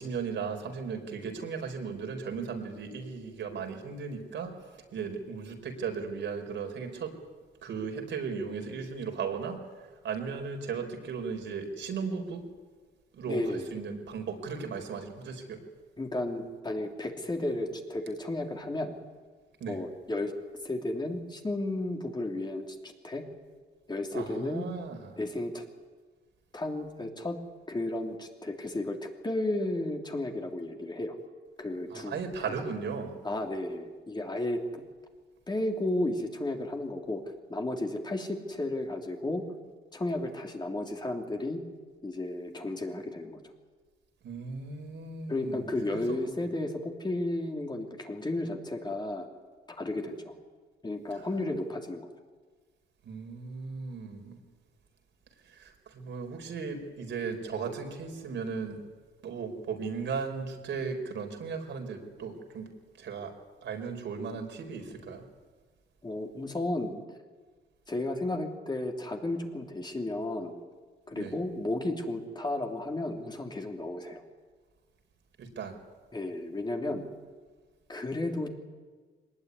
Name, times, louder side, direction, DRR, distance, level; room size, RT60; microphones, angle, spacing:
voice 1, 0.0-7.2 7.6-12.4 13.1-15.6 19.6-19.8 24.1-25.2 31.9-33.2 44.2-45.7 45.9-46.3 51.1-51.3 53.0-54.4 55.4-58.8 59.2-62.7 62.9-63.3 63.6-65.3 71.1-71.3 75.4-75.8, right 5 dB, 70° right, 4 dB, 4.7 m, -36 dB
voice 2, 13.3-13.8 16.0-18.9 19.7-20.3 20.6-23.2 23.9-24.7 25.2-25.6 26.5-27.4 27.7-31.1 31.6-32.2 33.2-34.8 35.5-39.4 39.9-41.6 42.0-43.4 45.3-49.3 49.7-50.4 50.8-52.1 66.0-67.0 67.9-70.5 71.1-74.2 76.1-77.0 77.9-78.5, left 2 dB, 20° left, 2 dB, 3.3 m, -33 dB
22.5 x 20.0 x 9.7 m, 1.5 s
cardioid pair, 90°, 20 cm